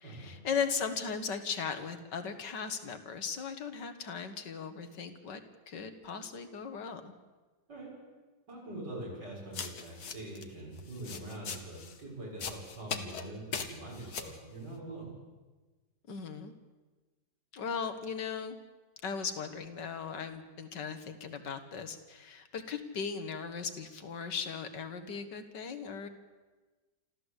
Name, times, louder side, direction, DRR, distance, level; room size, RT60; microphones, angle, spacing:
voice 1, 0.0-5.4 5.7-7.1 16.1-16.5 17.5-18.6 19.0-26.1, left 6 dB, 80° left, 8 dB, 2.2 m, -37 dB
voice 2, 8.5-15.1, right 1 dB, 80° right, -4 dB, 7.5 m, -43 dB
sound 1, 9.5-10.4 10.8-12.0 12.4-13.2 13.5-14.4, left 6 dB, 65° left, 1.9 m, -39 dB
27.5 x 13.5 x 8.3 m, 1.3 s
omnidirectional pair, 1.8 m